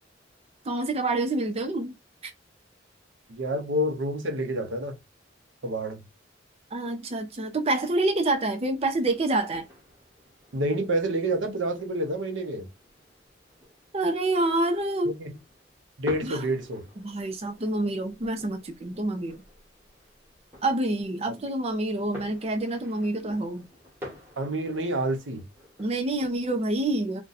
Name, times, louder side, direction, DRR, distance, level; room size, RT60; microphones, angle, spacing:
voice 1, 0.7-2.0 2.2-2.3 6.7-9.7 13.9-15.1 16.2-16.4 17.0-19.4 20.6-23.6 25.8-27.2, right 2 dB, 35° right, 0.5 m, -27 dB
voice 2, 3.3-4.9 5.6-6.0 10.5-12.7 15.1-15.3 16.0-16.8 24.4-25.4, right 1 dB, 85° right, 0.7 m, -28 dB
sound 1, 8.6-26.6, equal, 15° right, 1.2 m, -49 dB
2.7 x 2.2 x 3.9 m
head